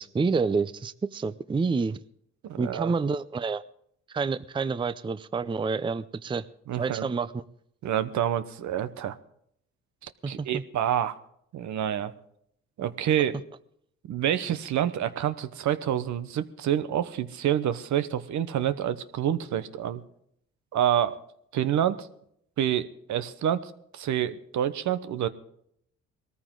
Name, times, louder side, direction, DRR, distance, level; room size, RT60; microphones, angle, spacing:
voice 1, 0.0-2.0 2.6-3.6 4.1-6.5 6.8-7.4 10.2-10.6, right 4 dB, 15° right, 15 dB, 0.5 m, -28 dB
voice 2, 2.4-2.9 6.7-7.1 7.8-9.2 10.0-11.2 11.5-12.1 12.8-13.3 14.1-20.0 20.7-21.2 21.5-22.1 22.6-25.3, right 10 dB, 70° right, 12 dB, 1.0 m, -27 dB
20.0 x 14.0 x 3.8 m, 0.70 s
cardioid pair, 90°, 30 cm